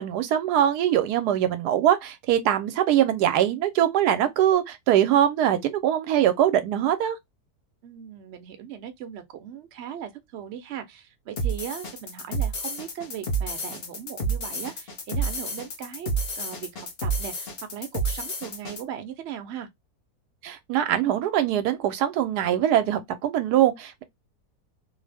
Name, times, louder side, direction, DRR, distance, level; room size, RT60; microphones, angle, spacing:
voice 1, 0.0-7.2 20.4-24.0, right 11 dB, 85° right, 1.1 m, -22 dB
voice 2, 7.8-19.7, right 9 dB, 60° right, 0.8 m, -38 dB
sound 1, 11.4-18.8, right 3 dB, 50° left, 0.8 m, -30 dB
2.7 x 2.0 x 3.3 m
omnidirectional pair, 1.7 m